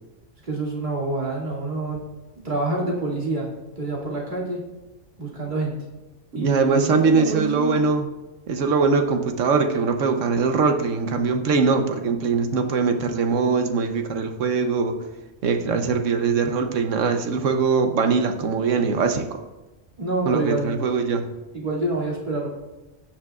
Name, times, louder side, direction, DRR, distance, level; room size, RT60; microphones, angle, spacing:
voice 1, 0.4-2.0 2.4-4.6 5.2-5.7 6.3-7.7 20.0-20.8 21.5-22.5, right 2 dB, 40° right, -5 dB, 2.7 m, -27 dB
voice 2, 6.4-8.1 8.5-15.0 15.4-19.2 20.3-21.2, right 4 dB, 85° right, 6 dB, 1.2 m, -22 dB
18.0 x 7.4 x 2.4 m, 1.1 s
omnidirectional pair, 1.3 m